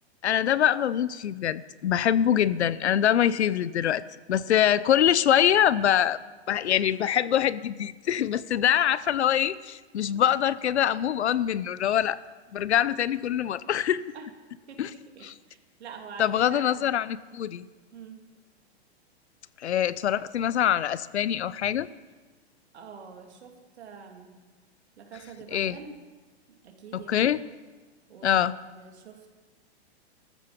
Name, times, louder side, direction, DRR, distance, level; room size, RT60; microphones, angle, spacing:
voice 1, 0.2-4.0 4.3-6.2 6.5-12.2 12.5-14.0 14.8-14.9 15.2-15.3 16.2-17.7 19.6-21.9 25.5-25.8 26.9-27.4 28.2-28.5, left 10 dB, 90° left, 18 dB, 0.7 m, -24 dB
voice 2, 14.7-16.9 17.9-18.2 22.7-24.4 25.0-26.0 26.6-27.3 28.1-28.4 28.8-29.3, right 5 dB, 80° right, 3 dB, 2.8 m, -45 dB
16.5 x 14.0 x 5.1 m, 1.3 s
hypercardioid pair, 130°, 33 cm